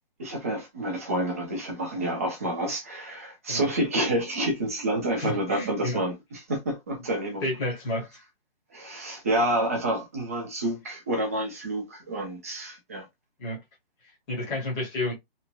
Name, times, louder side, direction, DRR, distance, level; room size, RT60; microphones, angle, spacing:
voice 1, 0.2-7.4 8.7-13.1, right 1 dB, 15° right, 0.5 m, -29 dB
voice 2, 5.2-6.0 7.4-8.1 13.4-13.6 14.3-15.1, left 1 dB, 10° left, 0.8 m, -30 dB
2.9 x 2.3 x 2.3 m
hypercardioid pair, 170°, 30 cm